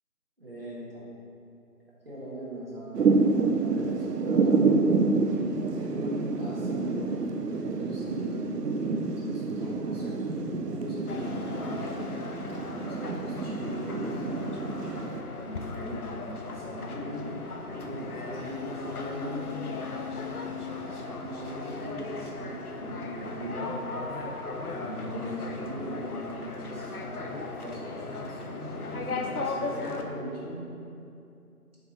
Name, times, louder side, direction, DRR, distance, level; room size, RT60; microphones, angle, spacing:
voice 1, 0.4-1.1 2.0-3.2 3.6-4.7 5.3-7.2 7.5-8.4 9.3-12.0 12.8-14.4 15.3-19.7 20.0-20.2 20.5-23.7 24.7-26.2 26.5-30.7, equal, 40° right, -8 dB, 1.4 m, -39 dB
Thunder / Rain, 3.0-15.2, right 4 dB, 85° right, 0.6 m, -28 dB
sound 1, 11.1-30.0, left 3 dB, 70° left, 0.7 m, -37 dB
6.4 x 3.4 x 4.3 m, 2.6 s
figure-of-eight pair, 170°, 46 cm